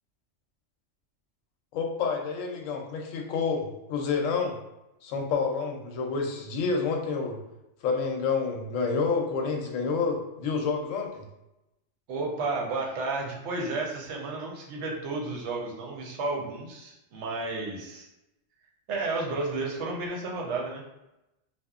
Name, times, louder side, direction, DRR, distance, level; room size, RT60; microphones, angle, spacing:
voice 1, 1.7-4.5 5.0-7.4 7.8-11.2, left 5 dB, 90° left, 2 dB, 0.9 m, -28 dB
voice 2, 12.1-18.1 18.9-20.8, right 3 dB, 70° right, 0 dB, 0.8 m, -32 dB
2.8 x 2.3 x 2.3 m, 0.92 s
omnidirectional pair, 1.3 m